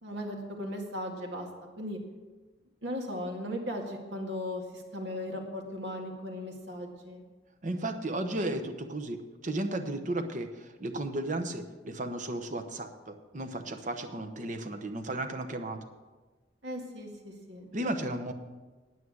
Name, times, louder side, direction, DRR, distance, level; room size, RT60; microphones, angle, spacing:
voice 1, 0.0-1.5 1.8-2.0 2.8-7.2 16.6-17.7, left 1 dB, 70° right, 2 dB, 2.0 m, -37 dB
voice 2, 7.6-15.8 17.7-18.3, right 1 dB, 40° right, 7 dB, 1.0 m, -34 dB
9.5 x 9.3 x 6.2 m, 1.3 s
head